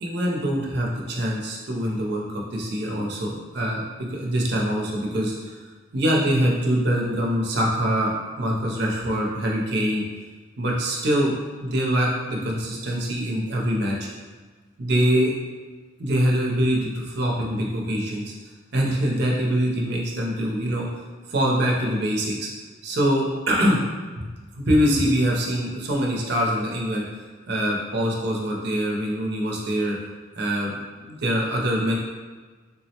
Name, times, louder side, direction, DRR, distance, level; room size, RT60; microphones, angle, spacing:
voice 1, 0.0-3.8 4.1-5.6 5.9-10.0 10.6-11.3 11.6-13.9 14.8-15.3 16.0-18.3 18.7-20.9 21.3-22.5 22.8-23.8 24.2-24.3 24.5-27.2 27.5-30.0 30.4-32.0, equal, 55° right, -2 dB, 0.5 m, -24 dB
3.6 x 2.0 x 2.8 m, 1.4 s
head